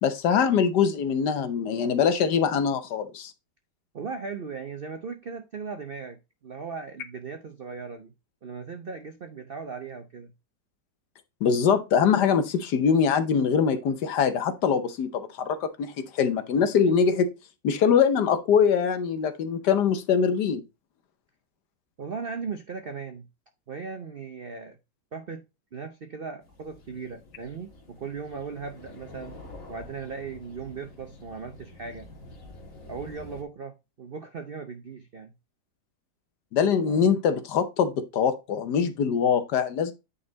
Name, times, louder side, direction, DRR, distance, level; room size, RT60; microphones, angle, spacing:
voice 1, 0.0-3.3 11.4-17.3 17.6-20.6 36.5-39.9, left 7 dB, 70° left, 1.4 m, -23 dB
voice 2, 3.9-6.2 6.4-8.1 8.4-10.3 22.0-23.2 23.7-24.8 25.1-25.4 25.7-29.4 29.7-32.1 32.9-35.3 36.9-37.1, right 5 dB, 60° right, 0.6 m, -38 dB
sound 1, 26.4-33.4, left 2 dB, 45° left, 2.0 m, -47 dB
9.1 x 4.1 x 3.9 m
omnidirectional pair, 2.0 m